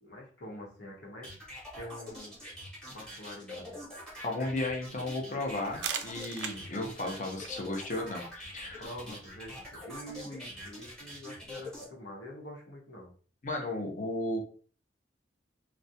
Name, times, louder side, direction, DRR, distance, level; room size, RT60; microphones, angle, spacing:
voice 1, 0.0-1.3 1.8-2.4 2.9-3.7 8.8-13.1, equal, 85° left, -2 dB, 0.9 m, -45 dB
sound 1, 1.2-11.9, left 1 dB, 5° left, 0.9 m, -45 dB
voice 2, 4.2-8.8 13.4-14.4, left 2 dB, 45° left, 1 dB, 0.5 m, -34 dB
sound 2, 5.5-11.0, right 7 dB, 70° right, 0.3 m, -44 dB
2.3 x 2.1 x 2.7 m, 0.40 s
head